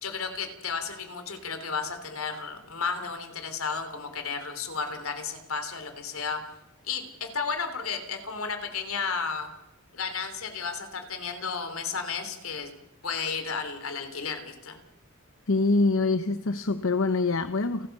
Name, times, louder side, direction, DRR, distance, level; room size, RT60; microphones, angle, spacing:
voice 1, 0.0-6.4 6.8-9.5 9.9-12.7 13.0-14.8, left 5 dB, 85° left, 8 dB, 3.3 m, -33 dB
voice 2, 15.5-17.9, left 3 dB, 65° left, 11 dB, 0.9 m, -24 dB
30.0 x 13.0 x 6.7 m, 0.90 s
head